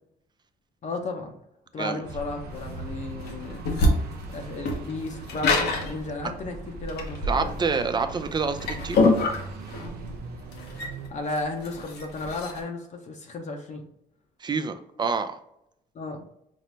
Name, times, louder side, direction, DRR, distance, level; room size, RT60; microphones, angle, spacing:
voice 1, 0.8-1.4 1.7-3.6 4.3-7.6 11.1-13.8 15.9-16.2, left 2 dB, 45° left, 3 dB, 0.7 m, -34 dB
sound 1, 2.0-11.1, right 4 dB, 80° right, 0.6 m, -41 dB
sound 2, 2.2-12.6, left 2 dB, 90° left, 0.9 m, -27 dB
voice 2, 7.3-9.0 14.4-15.4, right 5 dB, 25° right, 8 dB, 0.4 m, -27 dB
5.3 x 2.0 x 3.2 m, 0.78 s
cardioid pair, 105°, 16 cm